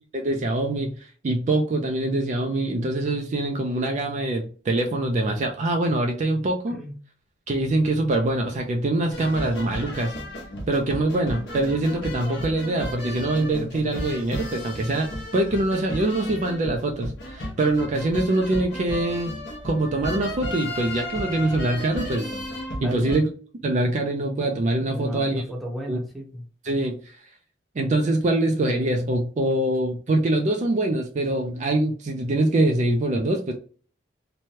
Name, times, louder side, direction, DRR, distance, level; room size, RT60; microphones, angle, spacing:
voice 1, 0.1-6.8 7.5-10.1 10.7-19.3 19.6-22.3 22.8-23.3 23.6-25.4 25.9-26.0 26.6-27.1 27.8-33.5, right 2 dB, 40° right, 3 dB, 0.4 m, -24 dB
sound 1, 9.1-23.2, equal, 60° left, 1.0 m, -34 dB
voice 2, 22.8-23.2 24.9-26.4, equal, ahead, 0 dB, 0.7 m, -34 dB
3.0 x 2.2 x 2.7 m, 0.42 s
head